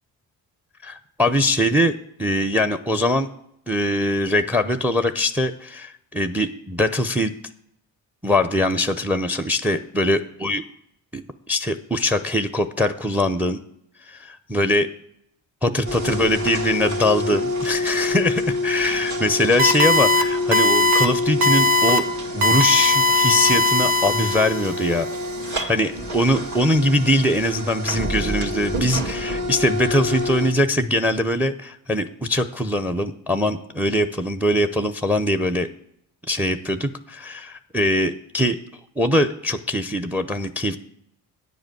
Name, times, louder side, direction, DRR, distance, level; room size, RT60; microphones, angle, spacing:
voice 1, 0.8-1.9 2.2-3.3 3.7-7.3 8.2-10.6 11.1-11.2 11.5-13.6 14.1-14.9 15.6-22.0 22.3-25.1 25.7-35.7 36.3-38.6 39.0-40.8, left 1 dB, 5° right, 11 dB, 0.7 m, -22 dB
sound 1, 15.9-30.5, left 2 dB, 35° right, 2.1 m, -27 dB
sound 2, 19.6-20.2 20.5-21.1 21.4-22.0 22.4-24.7, left 2 dB, 85° right, 1.0 m, -18 dB
9.9 x 4.9 x 7.9 m, 0.74 s
supercardioid pair, 50°, 47 cm